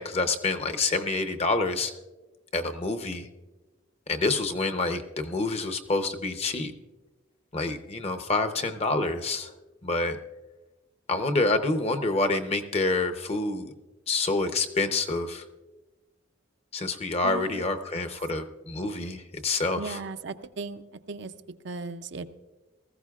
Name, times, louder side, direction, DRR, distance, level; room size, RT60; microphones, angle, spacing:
voice 1, 0.0-1.9 2.5-3.3 4.1-6.7 7.5-9.5 9.8-10.2 11.1-13.7 14.1-15.4 16.7-20.0, left 3 dB, 30° left, 7 dB, 0.7 m, -27 dB
voice 2, 17.2-17.6 19.8-20.8 21.1-21.3 21.6-22.2, right 4 dB, 55° right, 9 dB, 0.5 m, -36 dB
19.0 x 14.5 x 2.4 m, 1.1 s
head